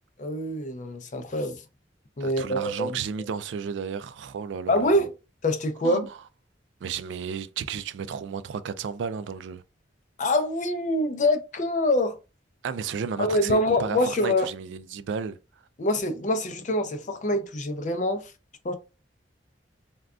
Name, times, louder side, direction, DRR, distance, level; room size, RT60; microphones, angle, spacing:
voice 1, 0.2-1.6 2.2-3.0 4.7-5.1 5.4-6.1 10.2-12.2 13.2-14.5 15.8-18.2 18.6-18.7, left 1 dB, 40° left, 0.5 m, -25 dB
voice 2, 2.2-5.1 5.8-6.1 6.8-9.6 12.6-15.4, right 6 dB, 80° right, 0.3 m, -33 dB
3.6 x 2.3 x 2.3 m
head